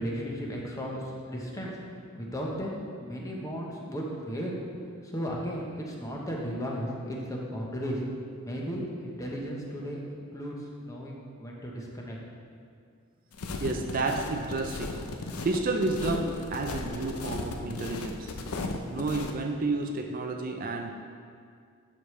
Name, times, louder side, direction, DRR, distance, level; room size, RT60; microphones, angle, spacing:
voice 1, 0.0-1.8 2.1-2.7 3.0-4.6 5.0-8.0 8.4-12.2, equal, 15° left, -2 dB, 0.9 m, -35 dB
sound 1, 13.3-19.3, left 3 dB, 90° left, 0.6 m, -36 dB
voice 2, 13.6-15.0 15.4-18.3 18.9-20.9, right 3 dB, 40° right, 3 dB, 0.4 m, -30 dB
12.0 x 5.0 x 3.2 m, 2.3 s
head